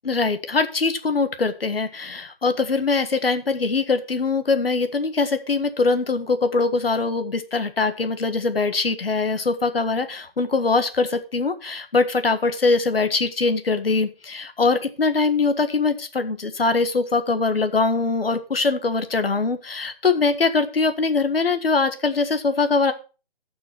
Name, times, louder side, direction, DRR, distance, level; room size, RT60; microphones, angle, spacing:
voice 1, 0.0-22.9, left 4 dB, 80° left, 10 dB, 1.6 m, -22 dB
13.0 x 6.1 x 4.5 m, 0.33 s
hypercardioid pair, 175°, 29 cm